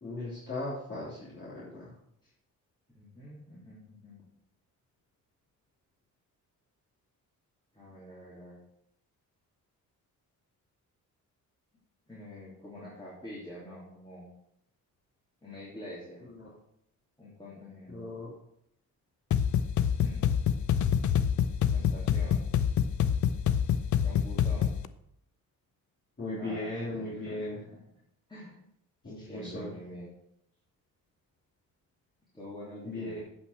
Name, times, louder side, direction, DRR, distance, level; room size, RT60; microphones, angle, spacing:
voice 1, 0.0-1.9 17.9-18.3 26.2-27.6 29.0-29.7 32.8-33.2, left 2 dB, 35° left, -9 dB, 3.3 m, -37 dB
voice 2, 2.9-4.2 7.7-8.6 12.1-14.3 15.4-16.2 17.2-18.0 20.0-20.2 21.6-22.4 24.0-24.7 26.4-27.8 28.3-28.6 29.1-30.2 32.3-33.2, equal, 15° left, -8 dB, 3.0 m, -46 dB
sound 1, 19.3-24.9, left 8 dB, 60° left, 0.6 m, -27 dB
8.4 x 5.6 x 6.8 m, 0.75 s
cardioid pair, 110°, 34 cm